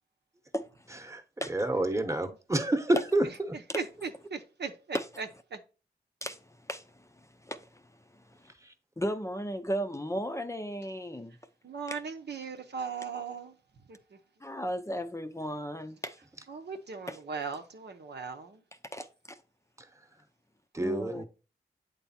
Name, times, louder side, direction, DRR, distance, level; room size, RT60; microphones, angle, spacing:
voice 1, 0.9-3.6 8.6-8.7 20.7-21.3, right 1 dB, 15° right, 1.0 m, -29 dB
voice 2, 3.7-5.6 11.6-13.5 13.9-14.2 16.5-18.6, right 5 dB, 75° right, 0.8 m, -38 dB
voice 3, 7.4-7.8 9.0-11.4 11.9-12.0 14.4-16.2 17.1-17.2 18.9-19.4 20.8-21.3, equal, 15° left, 0.6 m, -35 dB
8.1 x 3.4 x 4.2 m
cardioid pair, 50°, 18 cm